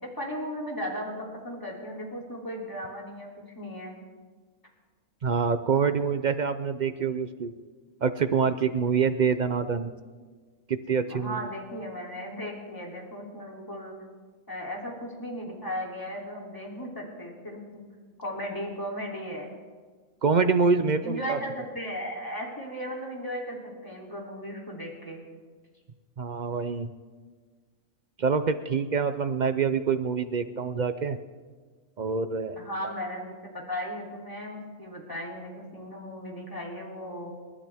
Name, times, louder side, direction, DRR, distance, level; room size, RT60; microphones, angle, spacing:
voice 1, 0.0-3.3 3.5-3.9 11.1-13.9 14.5-17.8 18.2-19.5 21.0-25.2 32.6-37.3, equal, 15° left, -2 dB, 3.1 m, -36 dB
voice 2, 5.2-7.5 8.0-9.9 10.7-11.4 20.2-21.4 26.2-26.9 28.2-31.2 32.0-32.6, right 5 dB, 55° right, 10 dB, 0.5 m, -26 dB
29.0 x 12.5 x 3.5 m, 1.5 s
omnidirectional pair, 1.5 m